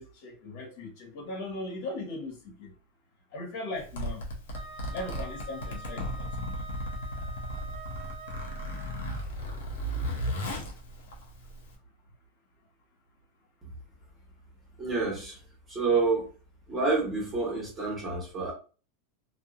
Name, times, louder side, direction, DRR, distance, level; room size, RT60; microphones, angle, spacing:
voice 1, 0.0-2.7 3.3-4.3 4.9-6.7, left 2 dB, 55° left, 1.3 m, -38 dB
Zipper (clothing), 3.8-11.7, equal, 85° left, 0.9 m, -35 dB
Wind instrument woodwind instrument, 4.5-9.2, right 2 dB, 40° right, 0.4 m, -46 dB
voice 2, 14.8-15.4 15.7-16.3 16.7-18.5, right 3 dB, 15° right, 1.1 m, -28 dB
2.7 x 2.3 x 2.4 m
supercardioid pair, 140°, 0 cm